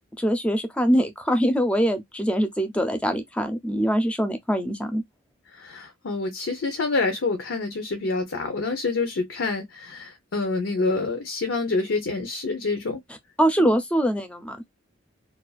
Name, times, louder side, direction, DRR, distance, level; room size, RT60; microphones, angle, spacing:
voice 1, 0.2-5.0 13.4-14.6, equal, 5° left, 0.4 m, -23 dB
voice 2, 5.5-13.0 13.6-13.7, left 3 dB, 85° left, 0.6 m, -27 dB
2.4 x 2.3 x 2.3 m
head